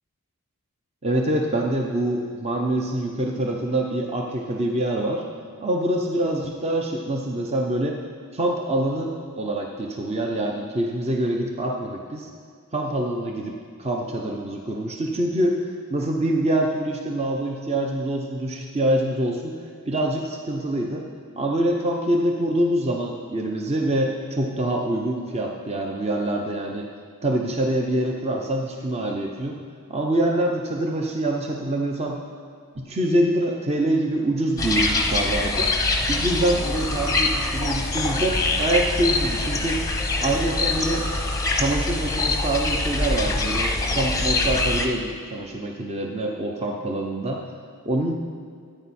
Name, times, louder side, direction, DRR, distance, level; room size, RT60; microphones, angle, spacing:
voice 1, 1.0-5.2 5.6-8.0 8.3-12.3 12.7-15.6 15.9-19.6 19.9-21.1 21.4-26.9 27.2-29.6 29.9-32.2 32.8-35.7 36.1-39.8 40.2-41.1 41.5-47.4 47.8-48.1, right 1 dB, 30° right, 1 dB, 0.7 m, -25 dB
sound 1, 34.6-44.9, left 2 dB, 15° left, 0.8 m, -24 dB
14.0 x 9.1 x 4.3 m, 2.1 s
head